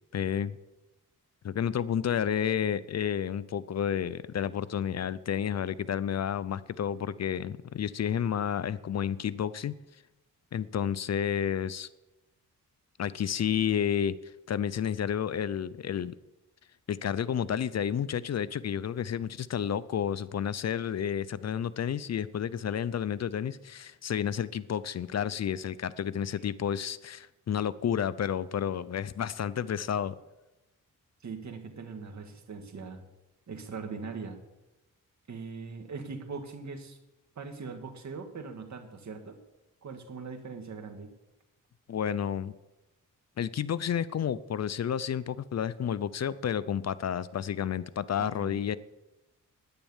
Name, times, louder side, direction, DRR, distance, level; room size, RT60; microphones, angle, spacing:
voice 1, 0.1-0.6 1.4-9.7 10.5-11.9 13.0-16.1 16.9-30.2 41.9-42.5 43.4-48.8, left 9 dB, 50° left, 17 dB, 0.6 m, -31 dB
voice 2, 31.2-33.0 33.5-34.4 35.3-37.0 37.4-39.4 39.8-41.1 48.2-48.6, right 4 dB, 55° right, 5 dB, 1.9 m, -41 dB
10.5 x 10.0 x 7.2 m, 1.0 s
cardioid pair, 95°, 33 cm